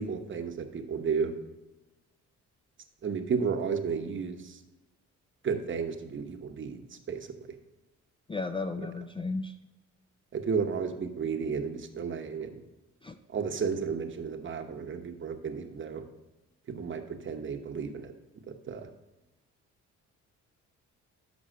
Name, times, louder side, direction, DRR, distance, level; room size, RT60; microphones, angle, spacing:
voice 1, 0.0-1.3 3.0-4.5 5.4-6.8 7.1-7.3 10.3-12.5 13.3-16.0 16.7-18.1 18.5-18.9, right 6 dB, 40° right, 5 dB, 0.9 m, -32 dB
voice 2, 8.3-9.5 13.0-13.2, left 3 dB, 20° left, 8 dB, 0.4 m, -34 dB
6.3 x 5.4 x 6.5 m, 1.0 s
cardioid pair, 90°, 30 cm